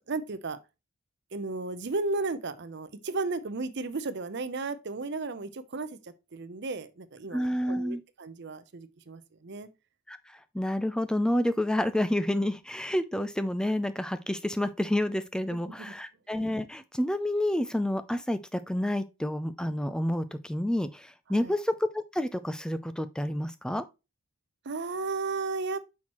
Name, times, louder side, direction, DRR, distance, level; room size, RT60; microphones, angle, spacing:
voice 1, 0.1-0.6 1.3-9.7 15.8-15.9 21.3-21.6 24.6-25.8, right 3 dB, 50° right, 0.6 m, -34 dB
voice 2, 7.3-8.0 10.1-23.8, left 1 dB, 5° left, 0.4 m, -29 dB
6.2 x 5.7 x 3.0 m
head